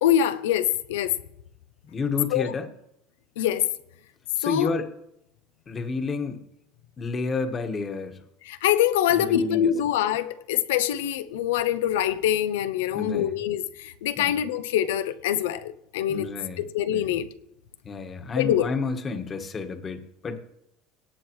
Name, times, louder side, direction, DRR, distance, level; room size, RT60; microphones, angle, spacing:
voice 1, 0.0-1.1 2.3-2.5 3.4-3.7 4.4-4.7 8.5-16.3 16.6-17.3 18.4-18.7, left 11 dB, 80° left, 0.6 m, -24 dB
voice 2, 1.9-2.7 4.4-4.9 5.7-6.4 7.0-8.2 9.1-9.7 12.9-13.4 14.2-14.3 16.1-17.1 17.8-20.4, left 4 dB, 35° left, 1.5 m, -30 dB
18.0 x 7.8 x 3.1 m
hypercardioid pair, 80°, 0 cm